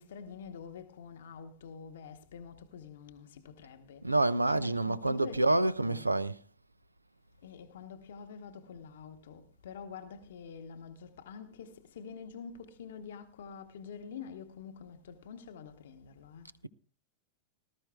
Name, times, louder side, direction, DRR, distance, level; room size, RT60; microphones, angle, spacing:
voice 1, 0.0-6.1 7.4-16.5, left 6 dB, 60° left, 0.9 m, -47 dB
voice 2, 4.0-6.4, right 2 dB, 85° right, 0.5 m, -27 dB
19.0 x 12.5 x 2.3 m
figure-of-eight pair, 90°, 0 cm